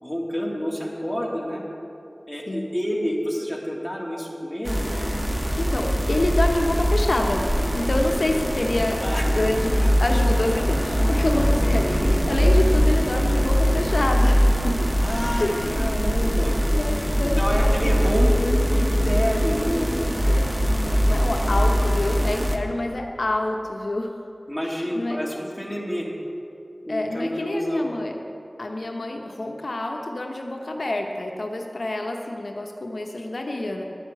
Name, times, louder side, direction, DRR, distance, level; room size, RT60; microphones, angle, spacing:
voice 1, 0.0-1.6 2.3-4.9 9.0-9.6 11.3-12.4 15.0-16.6 17.4-20.1 24.5-26.1 26.9-27.9, equal, 5° left, -2 dB, 2.6 m, -28 dB
sound 1, 4.6-22.6, equal, 15° right, 1.3 m, -22 dB
voice 2, 5.6-14.9 15.1-16.0 16.7-18.1 20.3-20.5 20.8-24.2 24.8-25.2 26.9-28.2 28.6-33.8, left 2 dB, 80° left, 2 dB, 0.9 m, -27 dB
11.0 x 8.1 x 7.7 m, 2.6 s
wide cardioid pair, 40°, 0 cm